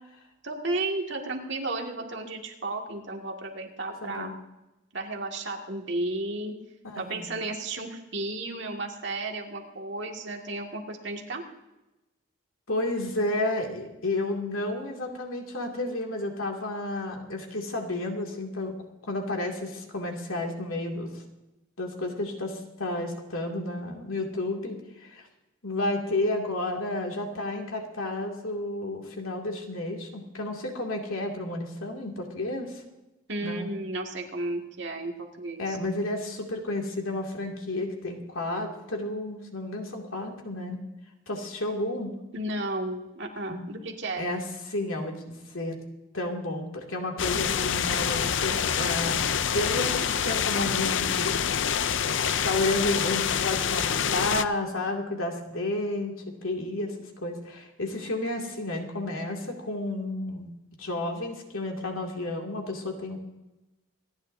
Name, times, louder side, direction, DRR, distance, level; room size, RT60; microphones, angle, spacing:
voice 1, 0.4-4.4 4.9-6.5 6.9-11.4 33.3-35.8 42.3-44.3, right 2 dB, 60° right, 1 dB, 2.1 m, -33 dB
voice 2, 4.0-4.4 6.8-7.3 12.7-18.7 19.0-21.2 21.8-25.3 25.6-32.8 33.4-33.7 35.6-40.8 41.3-42.1 43.5-43.6 44.2-45.8 46.1-49.2 49.5-51.4 52.2-56.1 56.4-60.5 60.8-63.2, left 2 dB, 85° left, 1 dB, 2.5 m, -31 dB
sound 1, 47.2-54.5, left 8 dB, 65° left, 0.5 m, -26 dB
26.5 x 10.5 x 2.7 m, 1.0 s
head